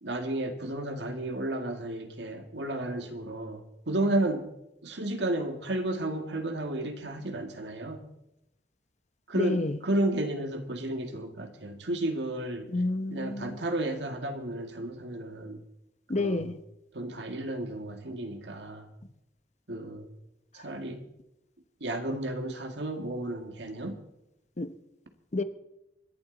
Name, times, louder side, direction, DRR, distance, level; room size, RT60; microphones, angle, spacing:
voice 1, 0.0-4.5 4.8-8.1 9.3-12.7 13.1-15.6 16.2-16.5 16.9-18.9 19.7-20.1 20.5-21.0 21.8-24.0, right 1 dB, 75° right, 1.9 m, -32 dB
voice 2, 9.3-9.8 12.7-13.6 16.1-16.6 24.6-24.7 25.3-25.4, left 2 dB, 40° left, 0.8 m, -29 dB
26.0 x 11.5 x 3.9 m
head